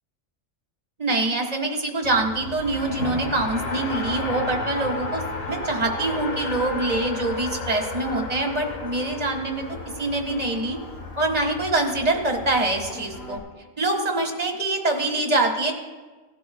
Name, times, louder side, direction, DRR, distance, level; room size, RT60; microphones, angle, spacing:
voice 1, 1.0-9.7 10.0-10.8 11.2-13.4 13.8-15.7, right 2 dB, 30° right, 2 dB, 1.7 m, -25 dB
Race car auto racing, 2.0-13.4, left 3 dB, 70° left, 1.8 m, -33 dB
18.5 x 12.0 x 2.3 m, 1.3 s
omnidirectional pair, 1.4 m